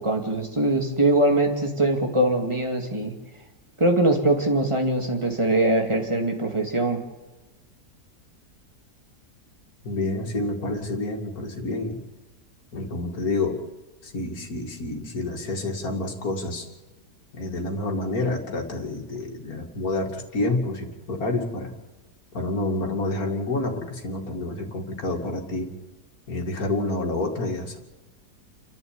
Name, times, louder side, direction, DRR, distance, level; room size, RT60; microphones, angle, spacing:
voice 1, 0.0-3.1 3.8-7.0, right 1 dB, 15° right, 3 dB, 2.6 m, -22 dB
voice 2, 9.8-12.0 12.7-13.6 14.0-16.7 17.3-21.7 22.3-25.7 26.3-27.8, left 2 dB, 60° left, 2 dB, 2.9 m, -28 dB
29.0 x 11.0 x 9.0 m, 1.2 s
omnidirectional pair, 1.8 m